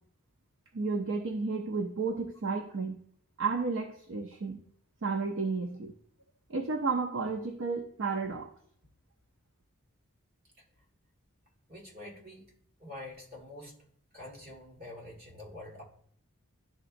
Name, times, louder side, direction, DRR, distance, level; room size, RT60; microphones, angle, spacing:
voice 1, 0.7-3.0 3.4-4.6 5.0-5.9 6.5-8.5, right 4 dB, 60° right, 5 dB, 0.5 m, -32 dB
voice 2, 11.7-12.5 12.8-13.8 14.1-15.8, left 1 dB, 45° right, -1 dB, 1.7 m, -46 dB
11.0 x 3.9 x 2.5 m, 0.63 s
head